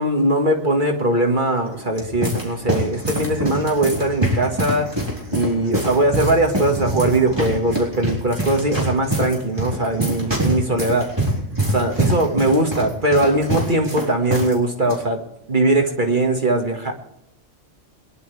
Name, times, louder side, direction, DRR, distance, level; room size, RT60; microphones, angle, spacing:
voice 1, 0.0-4.9 5.3-11.1 11.7-15.2 15.5-16.9, right 1 dB, 45° right, 3 dB, 1.9 m, -20 dB
sound 1, 1.7-14.6 14.8-15.0 15.7-16.0, right 1 dB, 20° right, 4.0 m, -25 dB
23.0 x 11.5 x 3.4 m, 0.79 s
omnidirectional pair, 1.2 m